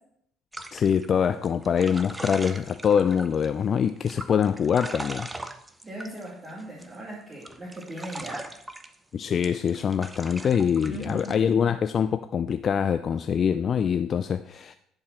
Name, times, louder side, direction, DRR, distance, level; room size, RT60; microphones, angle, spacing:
sound 1, 0.5-3.5 3.9-7.0 7.3-8.9 9.4-11.3, right 2 dB, 15° right, 0.7 m, -40 dB
voice 1, 0.7-5.3 9.1-14.7, left 7 dB, 45° left, 10 dB, 0.3 m, -24 dB
voice 2, 5.8-8.5 10.9-11.4, right 1 dB, 30° right, -6 dB, 2.3 m, -38 dB
10.5 x 4.7 x 4.2 m, 0.72 s
hypercardioid pair, 65°, 0 cm